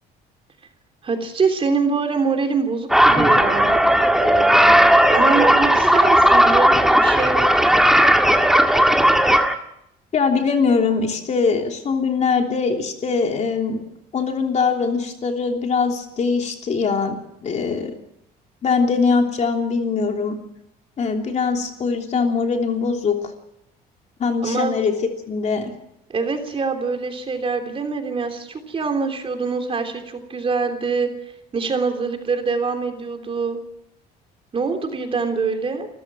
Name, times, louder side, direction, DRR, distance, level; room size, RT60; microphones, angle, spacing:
voice 1, 1.0-3.9 4.2-7.7 24.4-24.7 26.1-31.1 31.5-33.6 34.5-35.9, right 4 dB, 35° right, 5 dB, 3.4 m, -24 dB
sound 1, 2.9-9.5, equal, ahead, 1.9 m, -15 dB
voice 2, 10.1-13.8 14.1-17.2 17.4-17.9 18.6-20.4 21.0-23.2 24.2-24.9 25.3-25.7, left 5 dB, 45° left, 3 dB, 3.2 m, -21 dB
29.0 x 15.0 x 6.1 m, 0.81 s
cardioid pair, 110°, 17 cm